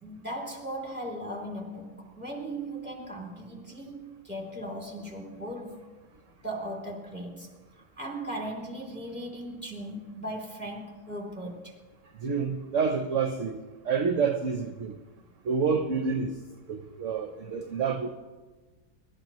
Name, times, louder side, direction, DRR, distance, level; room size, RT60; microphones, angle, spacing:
voice 1, 0.0-5.9 6.4-7.5 7.8-11.7 12.0-12.2, right 1 dB, 5° right, -1 dB, 2.8 m, -38 dB
voice 2, 12.2-13.6 13.8-15.0 15.4-16.3 16.7-18.1, right 5 dB, 55° right, 6 dB, 1.1 m, -28 dB
25.5 x 12.5 x 3.0 m, 1.3 s
omnidirectional pair, 1.7 m